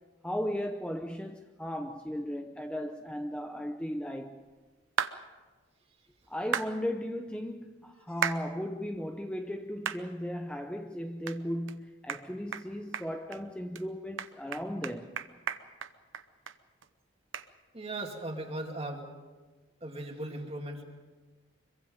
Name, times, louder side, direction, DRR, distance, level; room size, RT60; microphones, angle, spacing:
voice 1, 0.2-4.4 6.3-15.2, equal, 5° left, 0.6 m, -36 dB
sound 1, 5.0-5.2 6.5-6.7 8.2-8.4 8.9-9.0 9.8-10.0 10.5-10.6 11.3-11.4 11.7-11.8 12.1-12.2 12.5-12.7 12.9-13.4 13.7-13.8 14.2-16.6 16.8-16.9 17.3-17.5, right 7 dB, 75° right, 0.9 m, -33 dB
voice 2, 17.7-19.1 19.8-20.8, right 1 dB, 30° right, 2.6 m, -38 dB
25.0 x 23.0 x 5.2 m
head